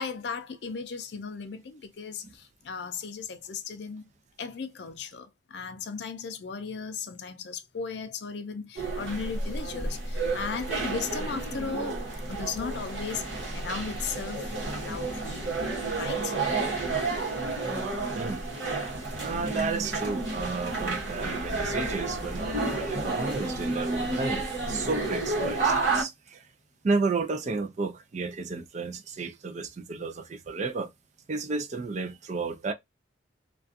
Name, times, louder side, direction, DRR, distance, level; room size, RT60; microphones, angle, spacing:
voice 1, 0.0-4.1 4.4-12.0 12.3-13.2 13.5-14.4 14.8-15.5 16.0-16.4, left 5 dB, 60° left, 0.5 m, -36 dB
sound 1, 8.8-26.0, right 3 dB, 70° right, 1.0 m, -31 dB
voice 2, 18.1-18.5 19.2-26.4 26.8-30.9 31.3-32.7, right 4 dB, 35° right, 0.3 m, -32 dB
2.5 x 2.3 x 2.5 m
head